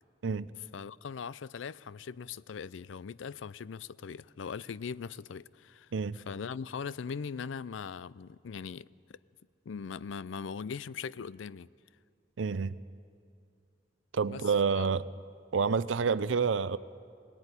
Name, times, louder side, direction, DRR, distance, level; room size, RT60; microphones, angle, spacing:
voice 1, 0.7-9.2 9.7-11.7 14.3-14.4 14.7-14.9, left 6 dB, 90° left, 0.4 m, -40 dB
voice 2, 12.4-12.8 14.1-15.1 15.5-16.8, right 5 dB, 85° right, 0.5 m, -28 dB
18.0 x 18.0 x 9.8 m
head